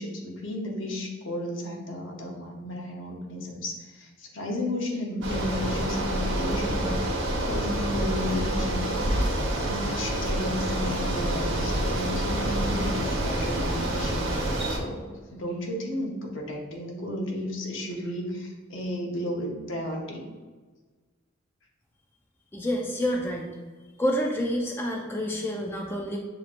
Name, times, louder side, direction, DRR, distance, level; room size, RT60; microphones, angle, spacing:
voice 1, 0.0-6.9 7.4-8.9 9.5-14.3 14.7-20.2, left 1 dB, 65° left, 0 dB, 0.9 m, -33 dB
Bicycle, 5.2-14.8, right 1 dB, 65° right, 1.1 m, -27 dB
voice 2, 22.5-23.6 24.0-26.2, equal, 10° left, 0 dB, 0.4 m, -28 dB
6.8 x 2.9 x 2.5 m, 1.4 s
head